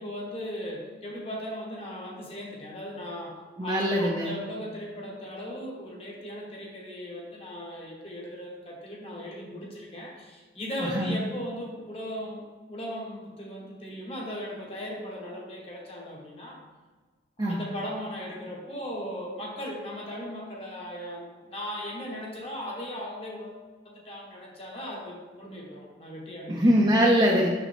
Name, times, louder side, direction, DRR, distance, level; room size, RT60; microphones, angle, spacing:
voice 1, 0.0-16.6 17.4-26.7, equal, 30° left, -2 dB, 1.3 m, -38 dB
voice 2, 3.6-4.3 10.9-11.1 17.4-17.6 26.5-27.5, equal, 25° right, -3 dB, 0.6 m, -22 dB
6.9 x 4.8 x 3.5 m, 1.4 s
head